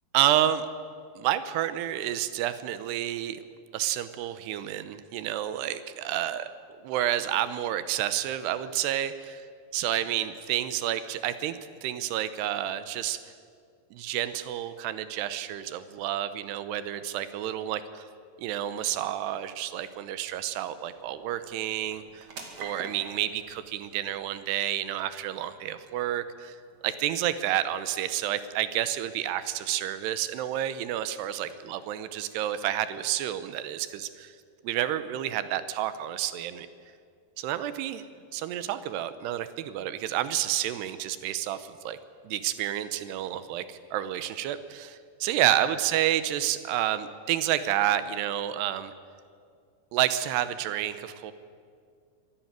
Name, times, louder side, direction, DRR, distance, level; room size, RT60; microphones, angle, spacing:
voice 1, 0.1-0.7 1.2-3.4 3.7-6.5 6.8-9.5 9.7-13.2 13.9-18.0 18.4-22.3 22.6-26.6 26.8-34.3 34.6-36.7 37.4-38.0 38.3-42.0 42.2-48.9 49.9-51.3, right 12 dB, 85° right, 13 dB, 3.0 m, -29 dB
sound 1, 19.2-33.8, right 4 dB, 45° right, 2.7 m, -52 dB
24.0 x 12.0 x 9.5 m, 2.2 s
omnidirectional pair, 4.7 m